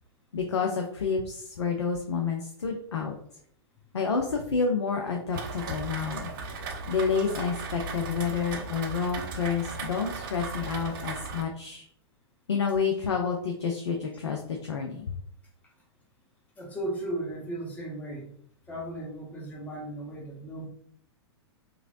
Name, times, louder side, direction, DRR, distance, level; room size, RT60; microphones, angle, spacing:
voice 1, 0.3-3.1 3.9-6.3 6.9-11.8 12.5-15.2, left 5 dB, 80° left, 2 dB, 0.5 m, -29 dB
Rain, 5.3-11.4, right 4 dB, 50° right, 0.5 m, -37 dB
voice 2, 16.6-18.3 18.7-20.7, right 1 dB, 10° left, -3 dB, 0.9 m, -36 dB
2.9 x 2.6 x 2.5 m, 0.64 s
figure-of-eight pair, 100°, 14 cm